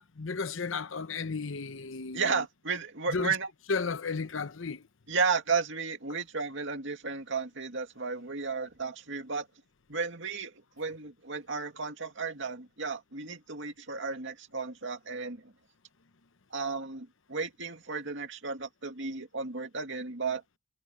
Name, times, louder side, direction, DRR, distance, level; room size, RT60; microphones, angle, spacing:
voice 1, 0.0-2.4 3.1-3.4 3.7-4.8, left 4 dB, 70° left, 0.9 m, -34 dB
voice 2, 2.1-3.5 5.1-9.5 9.9-15.5 16.5-20.4, right 4 dB, 65° right, 2.5 m, -33 dB
head